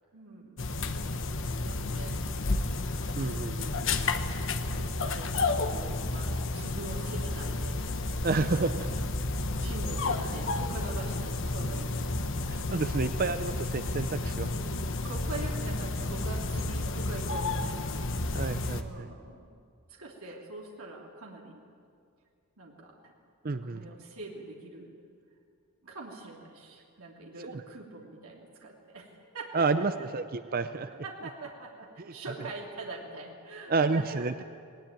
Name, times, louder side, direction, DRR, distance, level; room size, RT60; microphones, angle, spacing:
voice 1, 0.1-0.7 1.6-2.2 3.2-4.0 4.8-8.8 9.6-12.5 14.5-18.0 18.7-19.5 19.9-21.6 22.6-23.1 23.6-25.0 25.8-30.1 31.0-34.2, right 2 dB, 75° right, -2 dB, 3.0 m, -44 dB
sound 1, 0.6-18.8, left 2 dB, 60° left, 1.1 m, -31 dB
voice 2, 3.2-3.7 8.2-8.9 12.5-14.5 18.3-19.1 23.4-23.8 27.4-27.6 29.5-31.0 32.0-32.1 33.7-34.4, right 3 dB, 40° right, 11 dB, 0.5 m, -30 dB
19.5 x 19.5 x 9.0 m, 2.2 s
head